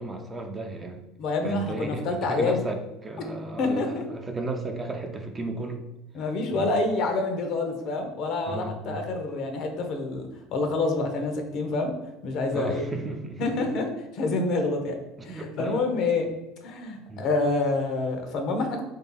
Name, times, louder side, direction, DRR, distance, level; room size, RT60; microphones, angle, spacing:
voice 1, 0.0-1.0 1.4-5.8 6.5-6.7 8.5-9.1 12.5-13.7 15.2-15.9 17.1-17.3, right 2 dB, 20° right, 4 dB, 0.5 m, -34 dB
voice 2, 1.2-2.6 3.6-4.0 6.1-11.9 12.2-12.8 13.4-13.9 14.1-15.0 15.2-16.3 16.6-18.8, left 3 dB, 55° left, 4 dB, 0.7 m, -27 dB
3.3 x 2.7 x 3.8 m, 0.93 s
supercardioid pair, 120°, 0 cm